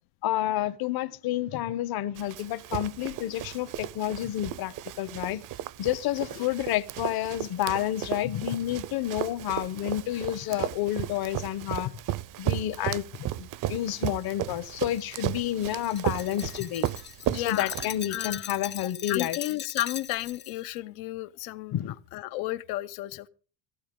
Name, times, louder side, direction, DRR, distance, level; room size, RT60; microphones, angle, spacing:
voice 1, 0.2-5.4 5.8-11.9 12.4-16.9 17.4-19.4 21.7-22.0, left 13 dB, 50° left, 1.1 m, -30 dB
Run, 2.2-18.3, right 13 dB, 45° right, 0.6 m, -35 dB
Glass, 14.2-20.6, left 8 dB, 25° left, 0.6 m, -40 dB
voice 2, 17.3-18.5 19.1-23.3, left 17 dB, 85° left, 0.9 m, -33 dB
16.5 x 15.0 x 3.8 m
cardioid pair, 130°, 46 cm